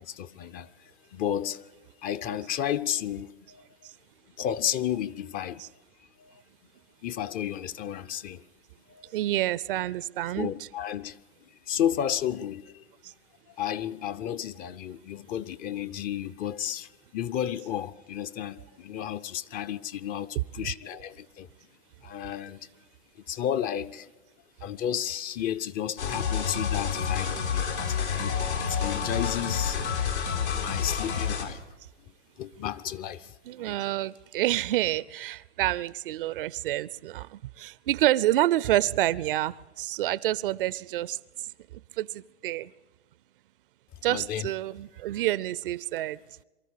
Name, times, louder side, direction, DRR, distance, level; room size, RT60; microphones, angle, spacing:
voice 1, 0.0-1.7 2.0-3.7 4.4-5.7 6.2-6.4 7.0-8.4 8.9-9.3 10.4-11.2 11.7-12.8 13.5-21.5 22.0-22.6 23.3-24.1 24.6-28.4 28.7-29.9 30.3-31.6 32.4-33.3 33.6-33.8 44.1-44.5, left 10 dB, 25° left, 0.6 m, -32 dB
voice 2, 9.1-10.5 13.0-13.1 20.4-20.5 33.5-41.2 42.0-42.7 44.0-46.2, right 14 dB, 55° right, 0.6 m, -28 dB
sound 1, 26.0-31.4, left 6 dB, 85° left, 3.9 m, -29 dB
24.0 x 13.5 x 8.4 m
hypercardioid pair, 110°, 33 cm